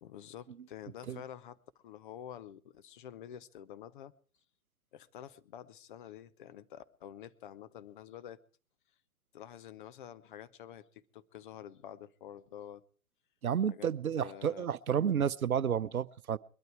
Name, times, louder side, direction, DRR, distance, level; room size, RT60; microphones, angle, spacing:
voice 1, 0.0-4.1 4.9-8.4 9.3-12.8 13.7-13.9 14.1-14.7, left 10 dB, 35° left, 0.8 m, -48 dB
voice 2, 13.4-16.4, right 8 dB, 75° right, 0.7 m, -31 dB
21.5 x 12.0 x 4.8 m
figure-of-eight pair, 115°, 43 cm